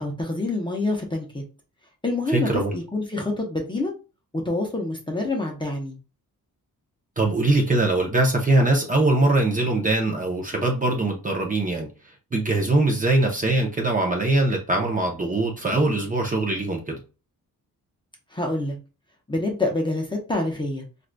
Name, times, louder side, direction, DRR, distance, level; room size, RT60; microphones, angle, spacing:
voice 1, 0.0-1.4 2.0-3.9 4.4-6.0 18.3-18.8 19.3-20.8, left 2 dB, 15° left, 0.7 m, -26 dB
voice 2, 2.3-2.7 7.2-11.9 12.3-17.0, right 2 dB, 25° right, 0.8 m, -22 dB
4.6 x 2.5 x 2.2 m
wide cardioid pair, 145°, 35 cm